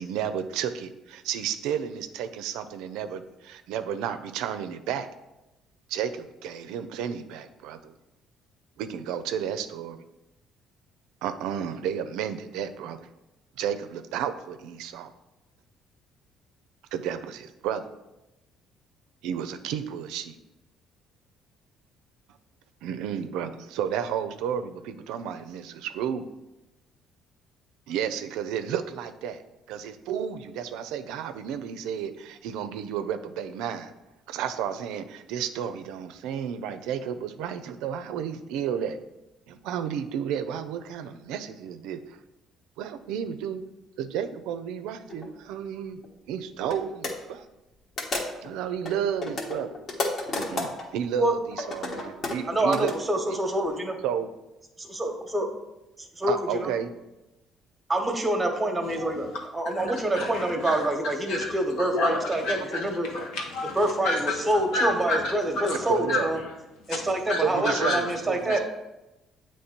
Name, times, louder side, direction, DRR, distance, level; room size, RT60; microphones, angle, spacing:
voice 1, 0.0-5.1 5.9-7.9 8.8-10.0 11.2-13.1 13.6-15.1 16.9-17.8 19.2-20.4 22.8-26.3 27.9-29.4 29.7-33.9 34.3-39.0 39.5-42.2 42.8-43.6 44.0-46.0 46.3-47.4 48.4-49.7 50.4-52.9 53.3-53.4 54.0-54.3 56.3-56.9 65.9-66.3 67.4-68.6, right 8 dB, 85° right, 10 dB, 0.4 m, -32 dB
sound 1, 45.1-45.3 46.0-46.1 46.6-46.8 47.0-47.1 48.0-48.5 48.9-50.8 51.5-52.9, left 2 dB, 50° left, 1.3 m, -31 dB
voice 2, 52.5-54.0 54.8-55.5 56.0-56.7 57.9-59.3 59.5-63.1 63.8-66.4 66.9-68.6, right 1 dB, 15° right, 4 dB, 1.0 m, -26 dB
voice 3, 59.0-59.4 59.8-60.9 61.3-66.5 66.9-68.2 68.5-68.6, left 2 dB, 90° left, -1 dB, 1.3 m, -31 dB
7.9 x 3.1 x 4.3 m, 0.97 s
cardioid pair, 90°, 0 cm